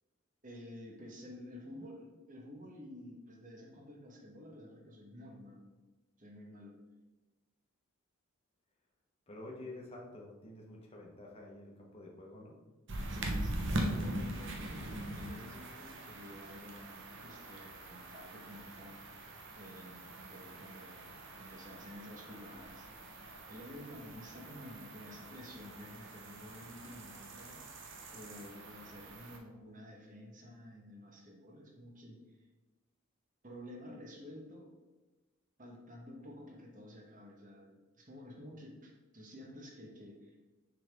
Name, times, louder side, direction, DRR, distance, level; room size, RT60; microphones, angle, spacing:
voice 1, 0.4-5.7 6.2-6.8 13.1-19.0 19.5-21.0 21.4-22.9 23.5-27.6 28.1-32.5 33.4-34.7 35.6-40.4, left 1 dB, 40° right, 1 dB, 1.3 m, -51 dB
voice 2, 9.3-12.6, left 2 dB, 30° left, -2 dB, 1.2 m, -49 dB
sound 1, 12.9-29.4, right 1 dB, 55° right, 1.0 m, -42 dB
6.6 x 5.8 x 3.6 m, 1.2 s
head